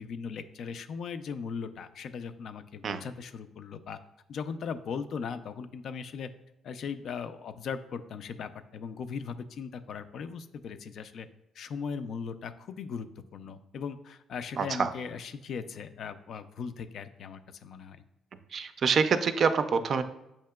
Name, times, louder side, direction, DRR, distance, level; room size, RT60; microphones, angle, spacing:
voice 1, 0.0-4.0 4.3-6.3 6.6-11.3 11.6-18.0, left 6 dB, 65° left, 10 dB, 0.3 m, -38 dB
voice 2, 14.6-14.9 18.5-20.0, right 5 dB, 55° right, 10 dB, 0.4 m, -26 dB
7.4 x 2.8 x 2.2 m, 0.90 s
cardioid pair, 90°, 0 cm